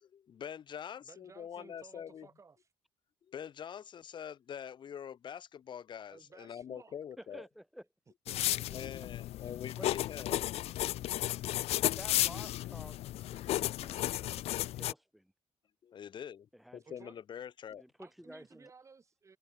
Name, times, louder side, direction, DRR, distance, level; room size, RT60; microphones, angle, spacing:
voice 1, 0.0-2.3 3.3-7.4 8.7-10.6 15.8-17.8, left 8 dB, 45° left, 1.4 m, -45 dB
voice 2, 1.0-2.7 6.1-7.0 8.3-8.8 9.4-9.5 16.8-17.2 18.0-19.4, right 5 dB, 25° right, 7.3 m, -57 dB
voice 3, 7.2-7.9 9.8-9.9 10.3-10.4 11.2-11.3 11.8-13.0 13.3-15.3 16.5-17.1 17.8-18.7, equal, ahead, 6.1 m, -52 dB
sound 1, 8.3-14.9, left 14 dB, 65° left, 0.4 m, -34 dB
cardioid pair, 140°, 11 cm